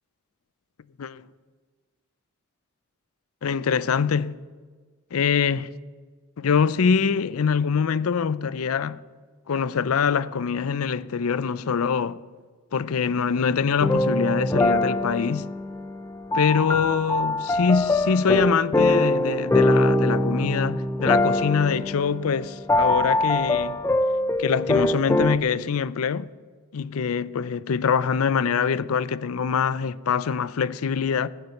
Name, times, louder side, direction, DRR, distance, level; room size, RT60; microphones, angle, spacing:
voice 1, 3.4-4.4 5.1-5.7 6.4-9.0 9.5-12.2 12.7-15.5 16.3-23.8 24.4-26.3 26.7-31.3, left 6 dB, 85° left, 0.5 m, -24 dB
sound 1, 13.8-25.4, left 1 dB, 10° left, 0.4 m, -23 dB
19.0 x 6.6 x 7.1 m
head